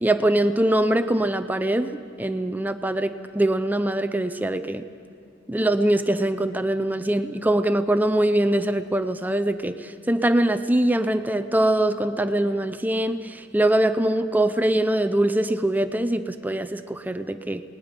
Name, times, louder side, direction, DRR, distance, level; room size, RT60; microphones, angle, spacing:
voice 1, 0.0-4.8 5.5-17.6, right 1 dB, 10° right, 9 dB, 0.5 m, -23 dB
29.5 x 20.0 x 5.2 m, 2.3 s
head